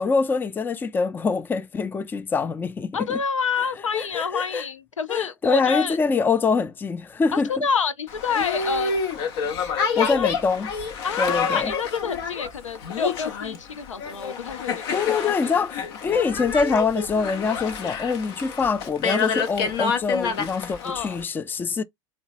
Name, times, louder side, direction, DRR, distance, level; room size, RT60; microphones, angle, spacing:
voice 1, 0.0-3.2 3.9-4.7 5.1-7.5 10.0-10.7 11.2-11.7 14.9-21.8, left 5 dB, 10° left, 0.4 m, -24 dB
voice 2, 2.9-6.0 7.3-8.9 10.0-10.3 11.0-15.5 20.8-21.2, left 5 dB, 85° left, 0.5 m, -28 dB
Boat Water vehicle, 8.1-21.2, left 6 dB, 55° left, 0.9 m, -28 dB
3.9 x 2.2 x 2.4 m
figure-of-eight pair, 85°, 16 cm